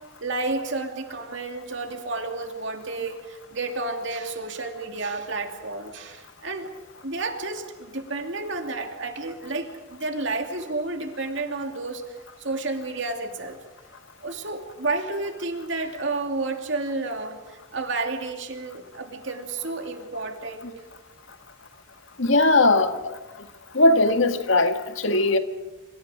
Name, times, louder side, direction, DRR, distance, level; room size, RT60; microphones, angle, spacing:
voice 1, 0.2-6.7 7.0-12.0 12.4-13.6 14.2-20.7, right 3 dB, 65° right, 4 dB, 2.6 m, -31 dB
voice 2, 22.2-23.2 23.7-25.4, left 2 dB, 85° left, 7 dB, 1.8 m, -19 dB
26.5 x 26.0 x 5.0 m, 1.1 s
head